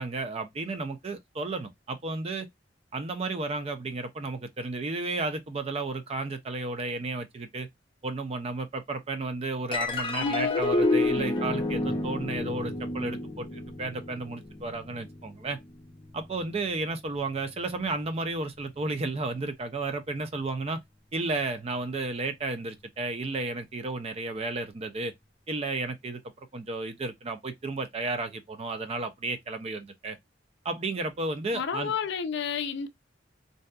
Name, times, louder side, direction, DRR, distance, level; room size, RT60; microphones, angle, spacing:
voice 1, 0.0-2.5 2.9-7.7 8.0-15.6 16.1-20.8 21.1-25.1 25.5-26.2 26.5-30.2 30.6-31.9, right 3 dB, 35° right, 0.4 m, -33 dB
sound 1, 9.7-16.4, left 2 dB, 25° left, 0.6 m, -30 dB
voice 2, 10.2-10.7 31.5-32.9, left 6 dB, 65° left, 0.4 m, -31 dB
2.6 x 2.2 x 2.3 m
head